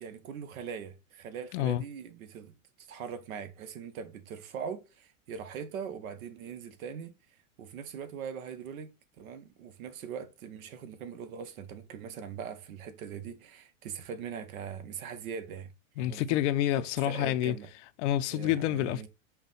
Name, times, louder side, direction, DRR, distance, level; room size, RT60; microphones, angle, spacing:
voice 1, 0.0-7.1 7.6-8.9 9.2-15.7 16.0-16.4 16.7-17.7 18.3-19.1, right 7 dB, 75° right, 0.9 m, -41 dB
voice 2, 1.5-1.8 16.0-17.6 18.0-19.1, left 13 dB, 55° left, 0.5 m, -28 dB
5.6 x 2.2 x 4.0 m
hypercardioid pair, 110°, 42 cm